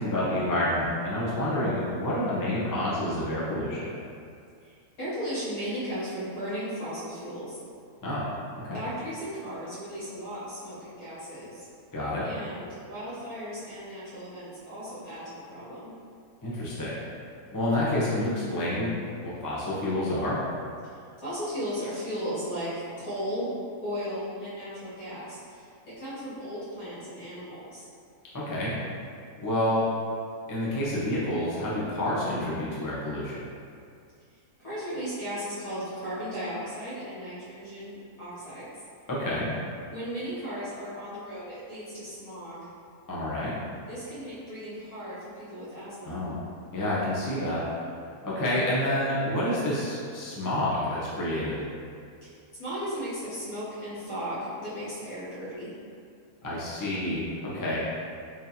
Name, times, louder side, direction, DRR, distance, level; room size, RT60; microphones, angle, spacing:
voice 1, 0.0-3.9 8.0-8.2 8.6-8.8 11.9-12.2 16.4-16.9 17.5-18.9 19.2-20.4 28.3-28.7 29.4-29.8 30.5-33.4 39.1-39.5 43.1-43.5 46.0-46.3 46.7-47.6 48.2-51.6 56.4-57.8, left 1 dB, 30° left, -8 dB, 0.3 m, -28 dB
voice 2, 4.6-7.6 8.7-11.7 12.2-15.9 20.8-22.7 23.0-23.5 23.8-27.8 34.6-38.7 39.9-42.7 43.9-46.3 52.2-55.7, equal, 65° left, -13 dB, 2.2 m, -36 dB
3.8 x 3.0 x 2.8 m, 2.3 s
omnidirectional pair, 1.6 m